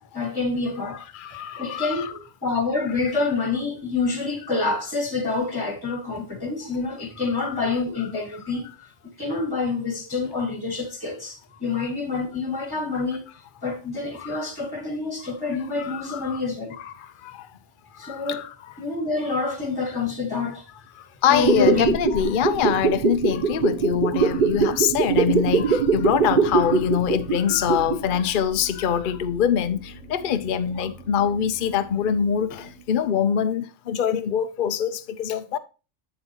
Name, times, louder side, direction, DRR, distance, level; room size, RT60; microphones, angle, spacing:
voice 1, 0.1-1.0 1.6-2.1 2.4-8.7 9.2-13.2 13.6-16.8 18.0-18.4 18.8-20.6 21.3-22.0, left 4 dB, 15° left, 1.8 m, -27 dB
voice 2, 0.9-2.1 7.5-7.6 8.0-8.1 12.9-13.0 14.1-14.4 15.8-16.4 16.8-17.5 17.9-18.7 19.3-19.5 20.9-35.6, left 8 dB, 50° left, 0.8 m, -24 dB
sound 1, 21.3-28.2 28.4-28.5, right 5 dB, 45° right, 0.9 m, -22 dB
sound 2, 24.5-33.1, equal, 75° right, 4.7 m, -44 dB
8.1 x 7.8 x 2.9 m
omnidirectional pair, 1.3 m